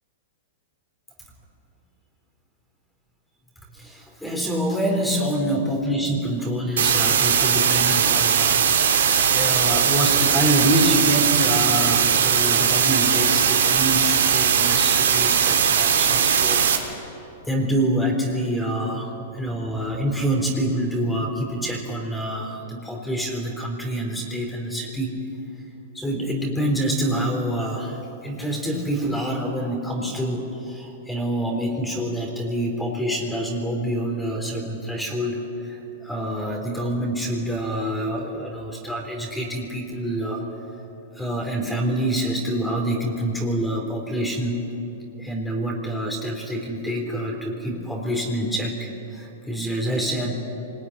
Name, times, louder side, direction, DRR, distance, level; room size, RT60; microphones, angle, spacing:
voice 1, 3.7-16.7 17.2-25.1 25.9-40.4 41.2-44.6 45.2-50.3, right 1 dB, 5° left, 0 dB, 3.7 m, -26 dB
sound 1, 6.8-16.8, right 7 dB, 90° right, 3.5 m, -19 dB
25.5 x 20.5 x 9.9 m, 2.9 s
hypercardioid pair, 140°, 0 cm